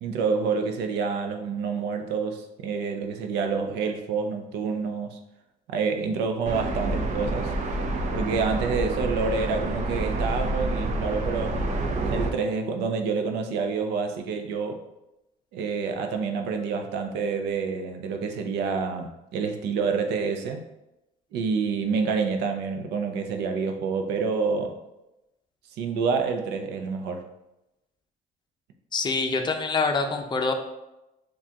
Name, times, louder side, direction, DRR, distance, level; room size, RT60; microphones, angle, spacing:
voice 1, 0.0-5.2 5.7-7.5 8.1-11.8 12.1-14.8 15.5-20.6 21.3-24.8 25.8-27.2, right 5 dB, 85° right, 5 dB, 0.6 m, -28 dB
sound 1, 6.4-12.3, right 2 dB, 45° right, 0.6 m, -28 dB
voice 2, 28.9-30.5, left 4 dB, 25° left, 5 dB, 0.6 m, -25 dB
7.0 x 2.4 x 2.9 m, 0.93 s
cardioid pair, 110°, 17 cm